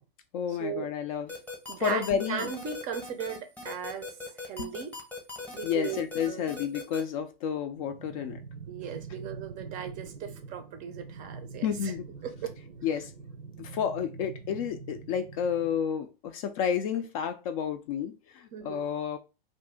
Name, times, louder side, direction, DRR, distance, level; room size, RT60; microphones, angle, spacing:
voice 1, 0.3-1.3 1.8-2.5 5.6-8.4 11.6-12.1 12.8-13.1 13.6-19.2, left 8 dB, 40° left, 0.4 m, -31 dB
sound 1, 1.3-7.0, left 4 dB, 5° left, 0.8 m, -39 dB
voice 2, 1.7-4.1 4.4-5.0 5.5-6.4 8.7-11.9 12.2-12.5 18.5-18.8, right 8 dB, 25° right, 0.5 m, -37 dB
sound 2, 2.1-2.5 4.6-4.9, left 5 dB, 75° left, 0.6 m, -42 dB
sound 3, 7.8-15.8, right 5 dB, 80° right, 0.6 m, -44 dB
2.6 x 2.5 x 3.5 m
hypercardioid pair, 120°, 30 cm